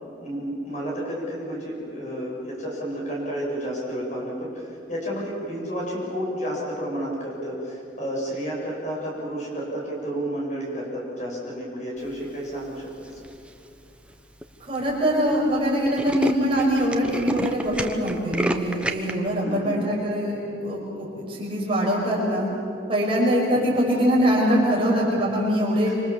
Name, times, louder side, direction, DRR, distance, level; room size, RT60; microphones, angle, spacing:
voice 1, 0.2-13.2 19.4-19.8 23.5-23.8 25.9-26.0, equal, 40° left, -4 dB, 7.9 m, -31 dB
Tools, 13.1-13.5 14.1-14.2 14.4-14.5 14.8-15.0 15.3-15.4 15.6-19.1, right 1 dB, 5° right, 1.1 m, -29 dB
voice 2, 14.6-22.5 22.9-25.9, equal, 30° right, -4 dB, 6.4 m, -23 dB
26.5 x 26.5 x 7.4 m, 2.6 s
head